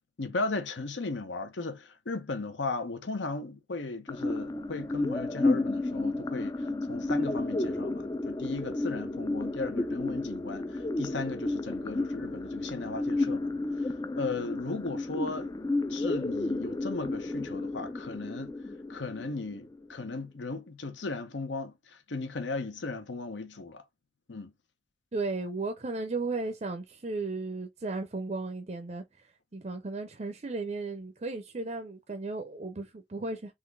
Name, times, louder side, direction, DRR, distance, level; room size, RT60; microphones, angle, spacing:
voice 1, 0.2-13.5 13.8-13.9 14.2-15.5 15.9-18.5 18.9-23.8 24.3-24.5, left 3 dB, 75° left, 0.9 m, -36 dB
sound 1, 4.1-20.1, left 2 dB, 20° left, 0.3 m, -32 dB
voice 2, 25.1-33.5, right 3 dB, 35° right, 0.5 m, -35 dB
3.8 x 3.0 x 3.5 m
head